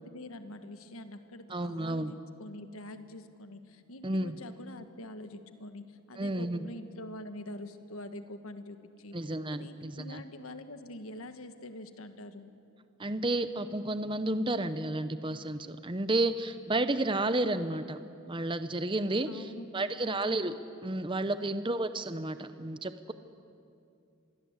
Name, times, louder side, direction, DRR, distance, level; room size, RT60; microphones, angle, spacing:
voice 1, 0.0-9.2 9.5-12.5 19.3-20.5 21.4-21.6, left 1 dB, 70° left, 9 dB, 1.4 m, -45 dB
voice 2, 1.5-2.1 4.0-4.4 6.2-6.6 9.1-10.2 13.0-18.0 18.3-19.4 19.7-20.5 20.8-23.1, right 2 dB, 20° right, 11 dB, 0.7 m, -31 dB
26.0 x 21.5 x 8.1 m, 2.6 s
head